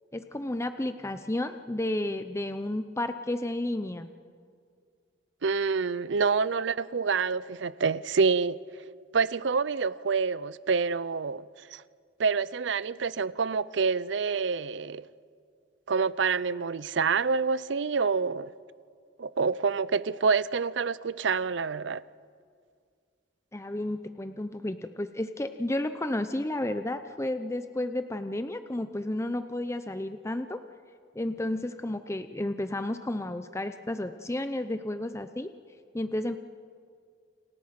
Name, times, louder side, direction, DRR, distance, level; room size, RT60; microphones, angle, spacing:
voice 1, 0.1-4.1 23.5-30.6 31.1-35.5 35.9-36.4, left 1 dB, 15° left, 0.7 m, -32 dB
voice 2, 5.4-8.6 9.1-11.4 11.7-11.8 12.2-15.0 15.9-18.5 19.2-22.0, right 5 dB, 75° right, 0.5 m, -27 dB
29.5 x 27.0 x 5.9 m
head